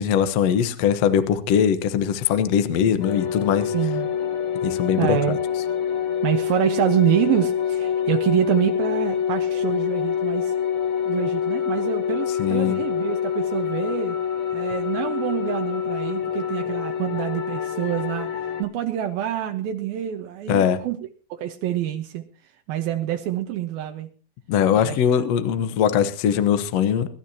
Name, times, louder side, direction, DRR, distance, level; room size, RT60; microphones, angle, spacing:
voice 1, 0.0-3.7 4.6-5.4 12.4-12.8 20.5-20.8 24.5-27.1, left 8 dB, 65° left, 10 dB, 1.7 m, -21 dB
sound 1, 3.0-18.6, left 8 dB, 45° left, 1.8 m, -26 dB
voice 2, 3.7-4.1 5.0-5.4 6.2-10.5 11.1-14.2 14.5-18.3 18.6-21.0 21.3-22.2 22.7-24.1 24.8-25.2, right 12 dB, 75° right, 5 dB, 2.8 m, -26 dB
23.5 x 12.5 x 2.9 m, 0.37 s
omnidirectional pair, 4.4 m